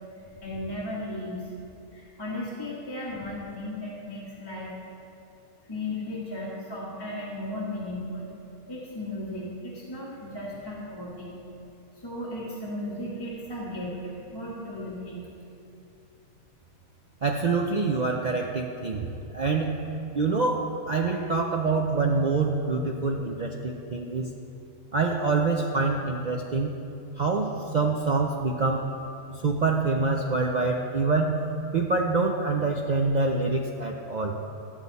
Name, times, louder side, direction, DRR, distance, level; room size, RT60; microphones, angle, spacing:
voice 1, 0.2-1.5 1.9-4.7 5.7-8.3 8.7-11.3 12.0-15.3, left 1 dB, 15° left, -7 dB, 1.6 m, -35 dB
voice 2, 17.2-19.1 19.3-19.7 20.1-24.3 24.9-26.8 27.2-28.9 29.4-31.4 31.7-34.4, right 3 dB, 65° right, 1 dB, 0.4 m, -26 dB
13.0 x 8.1 x 4.1 m, 2.8 s
omnidirectional pair, 1.5 m